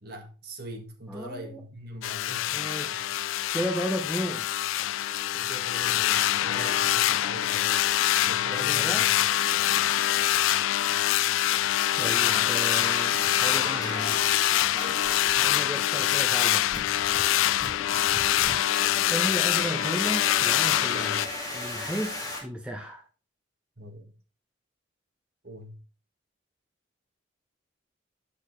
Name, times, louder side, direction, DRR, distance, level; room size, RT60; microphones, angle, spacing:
voice 1, 0.0-2.5 2.9-3.1 5.3-7.7 8.2-9.2 23.8-24.2 25.4-25.8, right 1 dB, 50° right, 1.7 m, -42 dB
voice 2, 1.1-1.6 2.5-3.1 3.5-4.5 6.5-6.8 7.1-7.2 8.5-9.1 12.0-14.2 15.4-16.7 19.1-21.3 21.5-23.0, equal, 5° right, 1.0 m, -34 dB
sound 1, 2.0-21.3, left 13 dB, 85° left, 0.3 m, -25 dB
sound 2, 10.1-10.3 10.8-11.0 11.7-22.4, left 2 dB, 20° left, 1.8 m, -38 dB
8.0 x 6.6 x 3.2 m
head